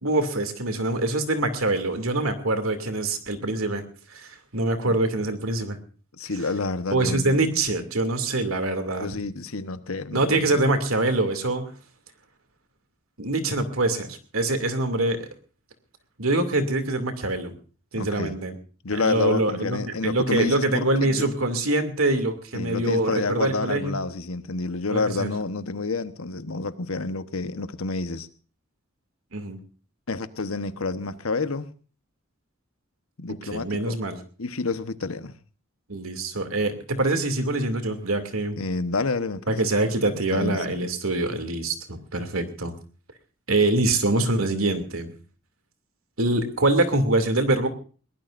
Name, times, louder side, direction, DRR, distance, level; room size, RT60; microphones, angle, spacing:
voice 1, 0.0-3.8 4.1-5.8 6.9-9.1 10.1-11.7 13.2-15.3 16.2-17.5 17.9-18.5 18.9-23.9 24.9-25.3 29.3-29.6 33.5-34.2 35.9-38.6 39.5-42.7 43.5-45.1 46.2-47.7, right 2 dB, 85° right, 7 dB, 2.7 m, -24 dB
voice 2, 6.1-7.5 9.0-10.5 17.9-18.4 18.8-21.3 22.5-28.3 30.1-31.7 33.2-34.0 34.4-35.4 38.6-39.6 40.1-40.9, left 3 dB, 85° left, 11 dB, 1.2 m, -29 dB
22.0 x 19.0 x 2.6 m, 0.39 s
head